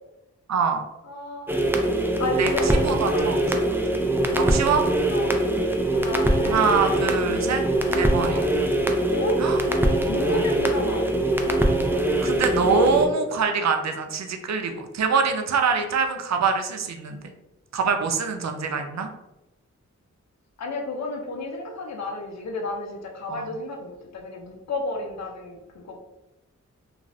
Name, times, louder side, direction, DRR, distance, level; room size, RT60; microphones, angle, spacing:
voice 1, 0.5-0.8 2.4-2.5 2.8-3.4 4.4-4.8 6.5-7.6 7.9-8.4 9.4-9.6 10.2-10.7 12.2-17.2 17.7-19.1 23.3-23.5, right 5 dB, 65° right, 5 dB, 0.5 m, -24 dB
voice 2, 1.0-1.6 2.2-3.3 5.1-5.4 5.9-7.0 8.1-8.6 9.1-9.4 10.1-11.1 20.6-26.0, left 2 dB, 65° left, 2 dB, 0.6 m, -32 dB
sound 1, 1.5-13.1, right 1 dB, 5° right, 0.4 m, -22 dB
2.5 x 2.4 x 3.1 m, 0.96 s
cardioid pair, 40°, 30 cm